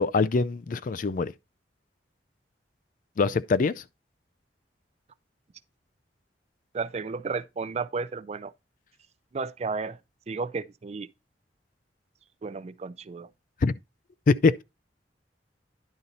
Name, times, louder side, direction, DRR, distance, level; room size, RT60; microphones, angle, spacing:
voice 1, 0.0-1.3 3.2-3.8 13.6-13.7 14.3-14.6, left 4 dB, 45° left, 0.4 m, -23 dB
voice 2, 6.7-8.5 9.3-10.0 10.3-11.1 12.4-13.3, right 4 dB, 35° right, 0.4 m, -33 dB
10.5 x 4.1 x 3.9 m
head